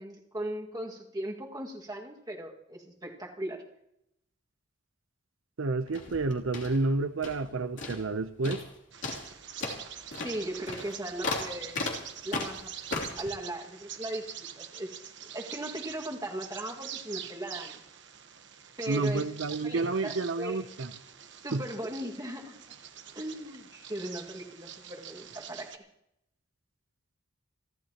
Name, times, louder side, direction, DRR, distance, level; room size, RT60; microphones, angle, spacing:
voice 1, 0.0-3.6 10.2-11.8 12.2-12.7 13.2-17.8 18.8-19.3 19.6-20.6 21.4-22.6 23.2-25.8, right 1 dB, 20° right, 2.0 m, -38 dB
voice 2, 5.6-8.6 18.9-20.9 21.5-21.6, right 3 dB, 90° right, 0.7 m, -30 dB
sound 1, 5.9-7.5 7.8-8.2 8.4-8.7 9.0-13.3, left 3 dB, 65° left, 3.1 m, -36 dB
Bird vocalization bird call bird song, 8.9-25.8, right 9 dB, 60° right, 1.1 m, -45 dB
29.0 x 12.0 x 3.0 m
head